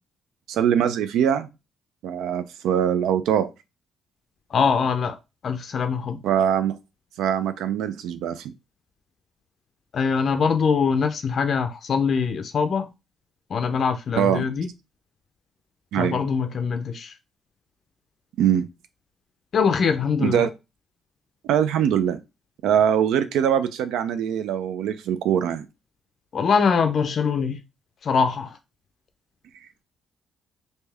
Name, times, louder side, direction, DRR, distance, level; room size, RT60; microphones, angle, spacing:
voice 1, 0.5-1.5 2.0-3.5 6.2-6.8 7.2-8.5 14.2-14.4 15.9-16.2 18.4-18.7 20.2-20.5 21.4-22.2 22.6-25.7, right 9 dB, 85° right, 0.4 m, -22 dB
voice 2, 4.5-5.2 5.4-6.2 9.9-12.9 13.5-14.7 16.0-17.1 19.5-20.4 26.3-27.6 28.0-28.6, left 5 dB, 55° left, 0.4 m, -23 dB
3.3 x 2.7 x 3.3 m
cardioid pair, 90°, 0 cm